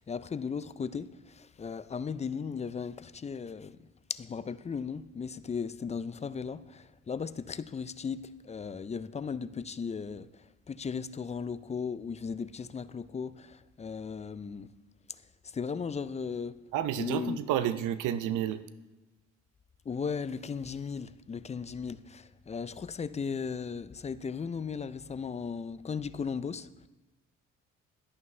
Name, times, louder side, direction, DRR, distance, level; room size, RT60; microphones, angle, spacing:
voice 1, 0.0-3.8 4.1-14.7 15.1-16.6 17.0-17.4 19.9-26.9, left 6 dB, 25° left, 0.4 m, -36 dB
voice 2, 16.7-18.6, right 10 dB, 90° right, 0.6 m, -30 dB
11.5 x 10.5 x 3.2 m
cardioid pair, 90°, 30 cm